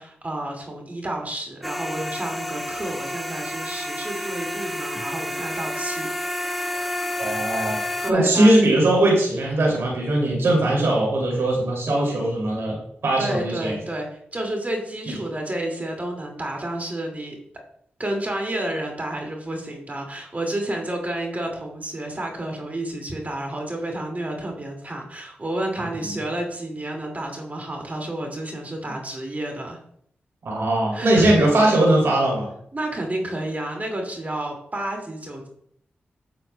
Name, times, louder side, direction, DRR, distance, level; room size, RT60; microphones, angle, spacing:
voice 1, 0.0-6.1 8.0-8.5 13.2-17.4 18.0-29.8 30.9-31.5 32.7-35.5, right 1 dB, 40° right, 1 dB, 2.2 m, -30 dB
sound 1, 1.6-8.1, left 1 dB, ahead, 0.8 m, -30 dB
voice 2, 7.2-7.8 8.1-13.7 26.1-26.2 30.4-32.5, right 1 dB, 80° right, -3 dB, 2.5 m, -20 dB
8.8 x 7.3 x 2.2 m, 0.67 s
cardioid pair, 45°, 4 cm